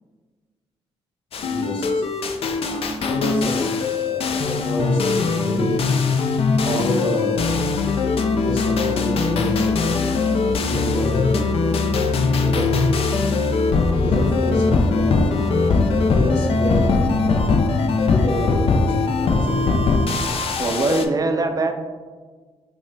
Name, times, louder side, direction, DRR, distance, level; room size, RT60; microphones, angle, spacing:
sound 1, 1.3-21.1, left 4 dB, 55° left, 0.3 m, -21 dB
voice 1, 1.4-2.0 3.0-5.7 6.6-7.6 8.3-11.4 12.3-12.9 13.2-13.4 13.9-17.5 18.1-19.6, left 1 dB, 80° left, -7 dB, 0.8 m, -28 dB
voice 2, 2.7-3.1 6.7-6.9 12.5-12.7 20.6-21.7, right 3 dB, 30° right, 6 dB, 0.4 m, -23 dB
4.9 x 2.1 x 2.6 m, 1.4 s
supercardioid pair, 55°, 11 cm